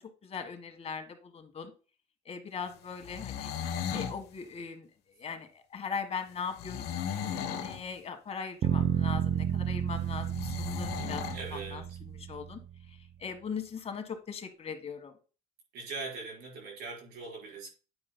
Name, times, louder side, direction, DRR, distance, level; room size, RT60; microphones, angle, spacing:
voice 1, 0.0-1.7 2.2-3.5 3.9-4.9 5.2-11.8 12.3-12.6 12.9-15.1, left 6 dB, 40° left, 1.6 m, -40 dB
sound 1, 3.0-4.2 6.6-7.8 10.3-11.4, left 8 dB, 75° left, 1.1 m, -36 dB
sound 2, 8.6-12.7, right 9 dB, 50° right, 0.6 m, -31 dB
voice 2, 11.3-12.0 15.7-17.7, right 3 dB, 90° right, 4.6 m, -41 dB
9.7 x 8.8 x 2.2 m
cardioid pair, 110°, 17 cm